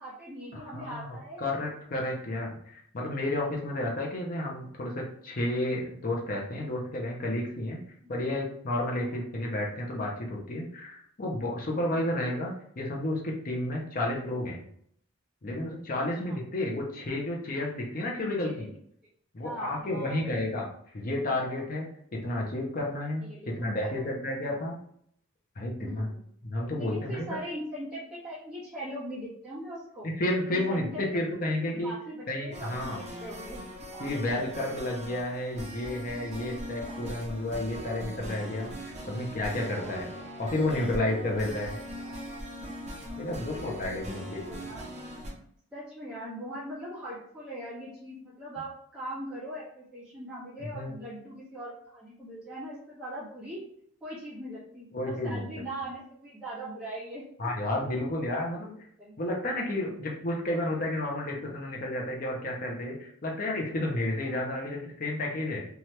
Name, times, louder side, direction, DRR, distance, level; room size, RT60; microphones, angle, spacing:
voice 1, 0.0-1.5 8.0-8.1 9.0-9.3 11.9-12.0 16.0-16.4 18.4-18.8 19.4-20.2 23.2-24.0 24.4-24.6 25.8-26.2 26.8-30.1 30.5-31.0 31.4-33.6 33.9-34.6 36.8-37.1 39.8-40.3 42.0-42.2 44.1-44.9 45.7-53.6 54.0-57.2 59.0-59.1 64.2-64.5, right 1 dB, 5° right, -11 dB, 0.9 m, -41 dB
voice 2, 0.5-7.8 8.1-14.6 15.4-18.7 19.3-24.8 25.6-26.1 26.4-27.2 30.0-31.9 32.3-33.0 34.0-40.1 40.4-41.8 43.2-44.6 50.7-50.9 54.9-55.4 57.4-58.7 59.2-65.6, left 1 dB, 40° left, -1 dB, 0.6 m, -31 dB
sound 1, 32.5-45.3, equal, 30° right, 0.6 m, -40 dB
2.8 x 2.3 x 3.1 m, 0.66 s
head